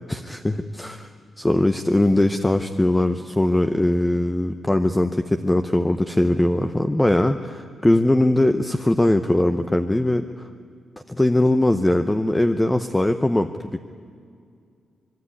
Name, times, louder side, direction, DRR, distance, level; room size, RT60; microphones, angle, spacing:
voice 1, 0.1-10.3 11.1-13.8, left 1 dB, 10° left, 8 dB, 0.7 m, -20 dB
25.5 x 23.0 x 9.7 m, 2.3 s
wide cardioid pair, 175°, 0 cm